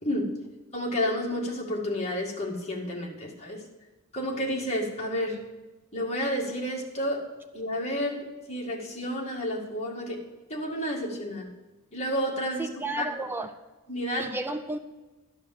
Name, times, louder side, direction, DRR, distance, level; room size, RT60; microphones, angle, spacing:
voice 1, 0.0-0.3 0.7-3.6 4.1-5.4 5.9-7.3 7.5-10.2 10.5-11.5 11.9-12.7 13.0-13.1 13.9-14.3, equal, 30° left, 2.1 m, -30 dB
voice 2, 12.6-13.5 14.2-14.8, right 2 dB, 10° right, 0.5 m, -32 dB
13.0 x 5.0 x 7.4 m
head